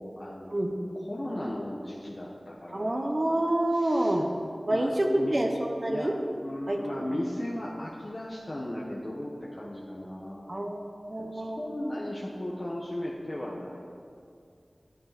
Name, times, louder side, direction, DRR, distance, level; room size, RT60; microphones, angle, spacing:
voice 1, 0.0-0.6 0.9-3.2 3.7-4.2 4.7-5.3 5.9-10.8 11.2-13.8, left 1 dB, 45° left, -5 dB, 1.4 m, -36 dB
voice 2, 2.7-4.3 4.7-6.1 6.7-7.2 10.5-10.8 11.1-11.6, right 1 dB, 45° right, 2 dB, 1.2 m, -27 dB
12.0 x 11.0 x 4.3 m, 2.4 s
wide cardioid pair, 50°, 0 cm